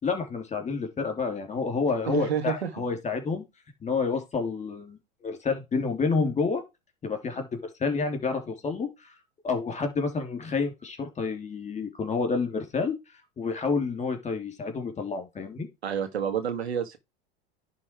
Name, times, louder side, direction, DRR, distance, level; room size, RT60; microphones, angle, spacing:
voice 1, 0.0-3.4 3.8-5.0 5.2-6.6 7.0-9.1 9.4-12.9 13.4-15.7, left 4 dB, 20° left, 3.1 m, -29 dB
voice 2, 2.1-2.7 15.8-17.0, right 7 dB, 85° right, 1.9 m, -29 dB
10.5 x 4.0 x 4.6 m
hypercardioid pair, 90°, 31 cm